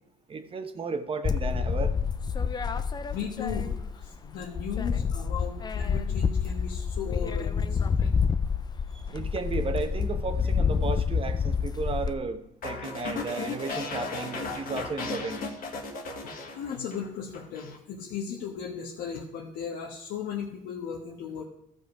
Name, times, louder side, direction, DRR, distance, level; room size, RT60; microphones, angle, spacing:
voice 1, 0.3-1.9 8.9-15.4, right 4 dB, 30° right, 7 dB, 1.0 m, -34 dB
sound 1, 1.2-4.1 4.4-12.1, left 6 dB, 25° left, 0.5 m, -28 dB
voice 2, 3.1-8.2 16.2-21.4, left 7 dB, 85° left, -3 dB, 1.3 m, -37 dB
sound 2, 12.6-17.1 17.3-17.8, left 4 dB, 55° left, 1.7 m, -35 dB
14.0 x 5.4 x 4.8 m, 0.77 s
cardioid pair, 110°, 17 cm